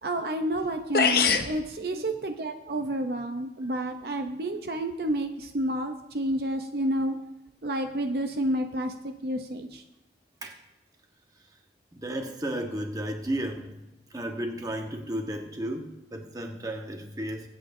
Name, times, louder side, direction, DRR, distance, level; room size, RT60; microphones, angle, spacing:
voice 1, 0.0-7.2 7.6-9.8, right 1 dB, 60° right, 6 dB, 0.7 m, -30 dB
sound 1, 0.6-0.7 0.9-1.5, left 5 dB, 55° left, 0.8 m, -22 dB
voice 2, 11.9-13.7 14.1-17.5, right 1 dB, 20° right, 3 dB, 1.2 m, -33 dB
22.5 x 8.6 x 2.7 m, 0.94 s
head